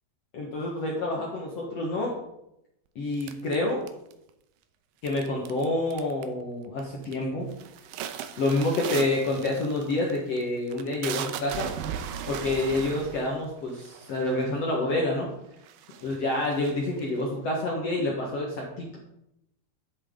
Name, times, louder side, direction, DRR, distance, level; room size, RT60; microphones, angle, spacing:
voice 1, 0.3-2.1 3.0-3.8 5.0-7.5 8.4-11.7 12.3-15.3 16.0-19.0, left 2 dB, 55° left, -2 dB, 1.8 m, -28 dB
sound 1, 3.2-4.3 5.1-5.6 5.9-6.4 6.8-7.2 7.5-14.6 15.2-15.3 15.6-17.2, right 9 dB, 80° right, 2.2 m, -37 dB
10.5 x 9.7 x 3.8 m, 0.84 s
omnidirectional pair, 4.6 m